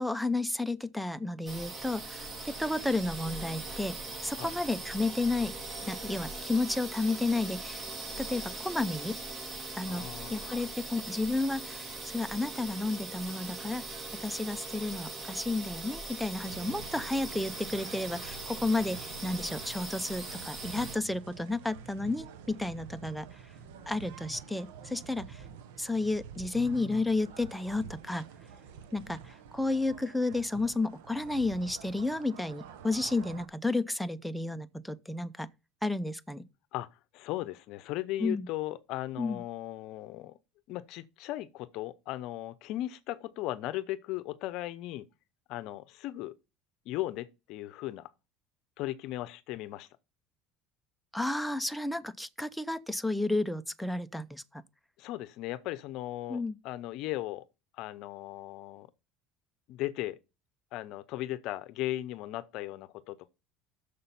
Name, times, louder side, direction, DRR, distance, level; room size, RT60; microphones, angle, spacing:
voice 1, 0.0-4.0 4.2-5.5 5.8-7.8 8.2-9.2 9.8-10.0 10.3-23.3 23.9-25.4 25.8-28.3 28.9-35.5 35.8-36.4 38.2-38.5 39.2-39.4 51.1-54.6 56.3-56.6, left 2 dB, ahead, 0.7 m, -32 dB
sound 1, 1.5-21.0, right 3 dB, 35° right, 2.7 m, -41 dB
voice 2, 9.9-10.7 26.5-27.0 36.7-40.4 40.7-45.1 45.5-46.4 46.8-48.1 48.8-49.9 55.0-57.4 57.7-58.9 59.7-60.2 60.7-63.3, left 15 dB, 65° left, 0.6 m, -37 dB
sound 2, 16.4-33.5, right 7 dB, 85° right, 1.1 m, -48 dB
6.7 x 5.5 x 7.0 m
supercardioid pair, 90°, 0 cm